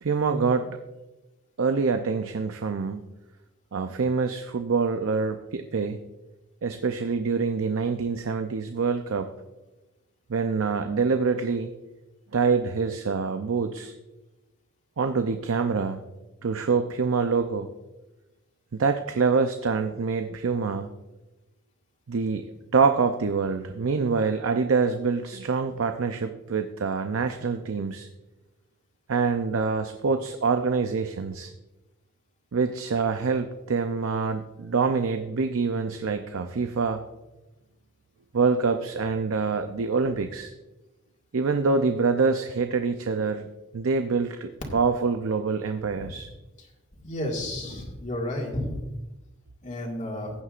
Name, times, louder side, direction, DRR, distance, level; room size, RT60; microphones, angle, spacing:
voice 1, 0.0-0.8 1.6-3.1 3.7-6.0 6.6-9.3 10.3-11.7 12.3-13.9 15.0-16.0 16.4-17.7 18.7-20.9 22.1-22.5 22.7-28.1 29.1-31.5 32.5-37.0 38.3-40.5 41.3-43.5 43.7-46.3, right 4 dB, 85° right, 7 dB, 0.6 m, -25 dB
voice 2, 47.0-48.7 49.6-50.3, left 1 dB, 35° left, -1 dB, 2.0 m, -32 dB
15.5 x 9.5 x 2.5 m, 1.0 s
head